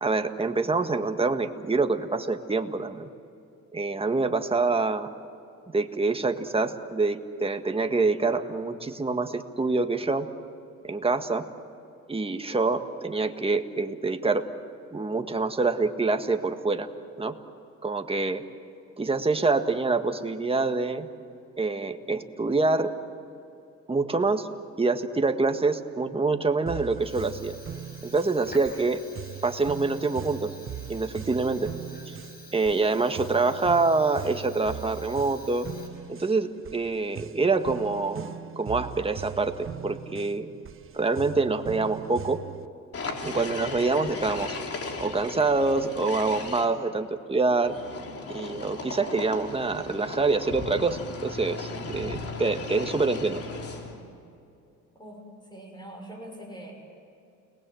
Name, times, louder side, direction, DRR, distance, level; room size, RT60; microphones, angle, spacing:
voice 1, 0.0-3.1 3.7-5.1 5.7-10.3 10.8-11.5 12.1-14.5 14.9-16.9 17.2-17.4 17.8-18.4 19.0-21.1 21.6-22.9 23.9-24.5 24.8-27.5 28.0-29.0 29.4-30.5 30.9-31.7 32.1-32.2 32.5-35.7 36.1-38.3 38.5-40.5 40.9-42.4 43.2-44.6 45.0-47.8 48.3-53.4, right 3 dB, 20° right, 6 dB, 1.7 m, -26 dB
sound 1, 26.7-42.7, right 9 dB, 45° right, 1.0 m, -40 dB
Fire, 26.9-36.3, left 2 dB, 30° left, 5.5 m, -49 dB
sound 2, 42.9-46.6 47.6-54.0, left 3 dB, 50° left, 3.5 m, -37 dB
voice 2, 54.9-56.7, right 1 dB, 15° left, 2 dB, 6.4 m, -43 dB
30.0 x 20.0 x 7.9 m, 2.7 s
cardioid pair, 90°, 30 cm